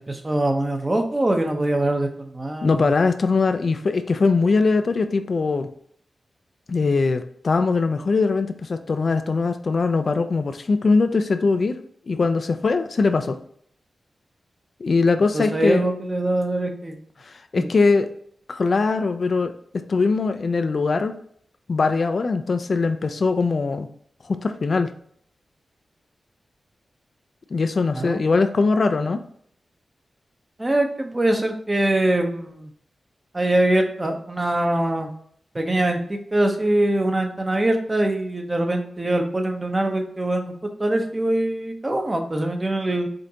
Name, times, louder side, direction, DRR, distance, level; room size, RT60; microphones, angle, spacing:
voice 1, 0.0-2.8 15.3-17.0 17.5-17.7 27.9-28.2 30.6-32.7 33.3-35.1 35.5-40.5 40.8-43.1, right 1 dB, 30° right, 4 dB, 0.8 m, -23 dB
voice 2, 2.6-5.7 6.7-11.8 12.1-13.4 14.8-15.8 17.2-18.1 18.5-19.5 19.9-21.1 21.7-23.9 24.3-24.9 27.5-29.2, left 4 dB, 60° left, 9 dB, 0.3 m, -21 dB
5.1 x 2.6 x 2.8 m, 0.64 s
cardioid pair, 55°, 0 cm